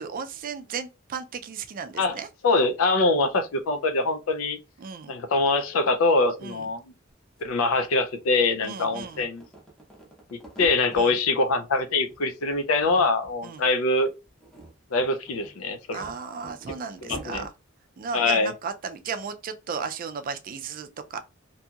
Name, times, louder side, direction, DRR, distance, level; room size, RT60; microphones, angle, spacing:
voice 1, 0.0-2.3 4.8-5.1 6.4-6.7 8.6-9.3 11.0-11.2 13.4-13.6 15.9-17.5 18.0-21.2, right 5 dB, 45° right, 0.3 m, -35 dB
voice 2, 2.0-4.6 5.1-6.8 7.4-9.4 10.3-14.1 14.9-16.0 17.0-17.4 18.1-18.5, left 3 dB, 85° left, 0.4 m, -24 dB
sound 1, 7.1-7.2 7.4-8.5 8.9-11.1 11.5-12.2 12.5-13.3 13.6-13.8 14.2-17.5, right 1 dB, 5° left, 0.7 m, -45 dB
2.8 x 2.6 x 2.3 m
head